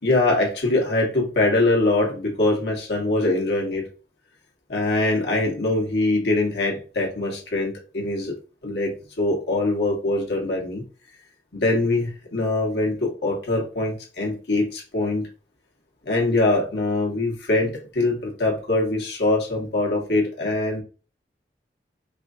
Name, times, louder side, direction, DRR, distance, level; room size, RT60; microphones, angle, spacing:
voice 1, 0.0-3.9 4.7-8.3 8.6-10.8 11.5-15.3 16.0-20.8, left 2 dB, 70° left, -2 dB, 1.5 m, -23 dB
4.8 x 2.6 x 2.7 m, 0.36 s
head